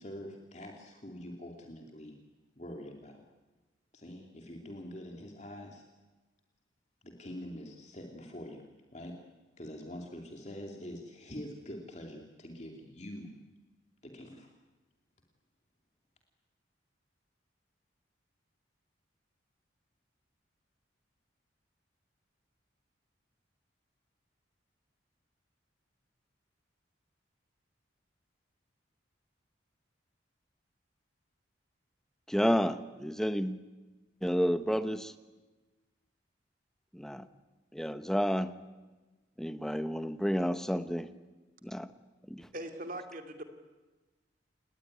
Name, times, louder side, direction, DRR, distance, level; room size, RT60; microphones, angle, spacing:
voice 1, 0.0-2.2 2.6-3.2 3.9-5.8 7.0-9.2 9.6-13.4 14.0-14.5, left 1 dB, 35° left, 2 dB, 2.5 m, -45 dB
voice 2, 32.3-33.6 34.2-35.1 36.9-37.3 37.7-38.5 39.4-41.1 41.6-41.9 42.3-42.5, equal, ahead, 11 dB, 0.9 m, -30 dB
voice 3, 42.5-43.4, right 1 dB, 45° right, 6 dB, 2.8 m, -40 dB
29.0 x 19.5 x 9.6 m, 1.2 s
head